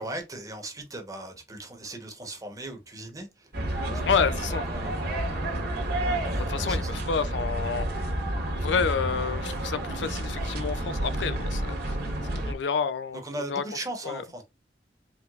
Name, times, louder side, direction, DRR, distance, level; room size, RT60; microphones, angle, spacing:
voice 1, 0.0-3.5 3.8-4.0 4.4-5.2 6.3-6.9 13.2-14.4, right 1 dB, 20° right, 1.0 m, -38 dB
sound 1, 3.5-12.5, right 1 dB, 60° right, 1.3 m, -30 dB
voice 2, 4.1-4.7 6.4-7.9 8.6-12.0 12.3-13.2 13.5-13.6 14.0-14.2, left 6 dB, 80° left, 0.4 m, -29 dB
4.8 x 3.4 x 2.4 m
head